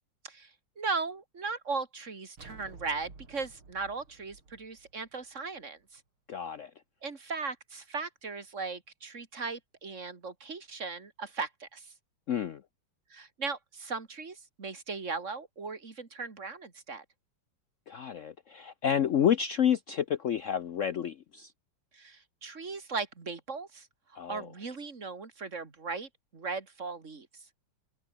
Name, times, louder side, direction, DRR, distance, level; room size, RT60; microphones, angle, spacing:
voice 1, 0.8-6.0 7.0-11.9 13.1-17.0 21.9-23.9 24.3-27.3, right 4 dB, 35° right, 2.5 m, -38 dB
sound 1, 2.4-5.8, right 4 dB, 75° right, 5.5 m, -53 dB
voice 2, 6.3-6.7 12.3-12.6 17.9-21.5 24.2-24.5, left 9 dB, 90° left, 0.6 m, -29 dB
omnidirectional pair, 2.3 m